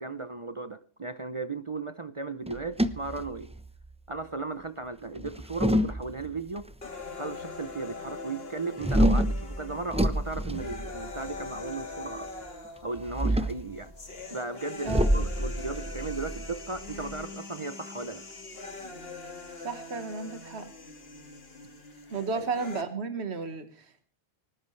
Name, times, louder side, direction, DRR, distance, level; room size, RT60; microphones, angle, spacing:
voice 1, 0.0-3.5 4.1-6.7 7.1-12.3 12.8-13.9 14.3-18.3 22.3-22.4, right 3 dB, 30° right, 0.7 m, -36 dB
sound 1, 2.5-3.9 5.2-6.6 8.8-11.4 13.0-13.7 14.9-17.2, equal, 5° right, 0.9 m, -27 dB
sound 2, 6.8-22.8, left 3 dB, 60° left, 2.3 m, -43 dB
voice 2, 14.8-15.3 19.6-20.7 22.1-24.1, right 4 dB, 70° right, 1.8 m, -34 dB
20.0 x 19.5 x 3.3 m
omnidirectional pair, 1.1 m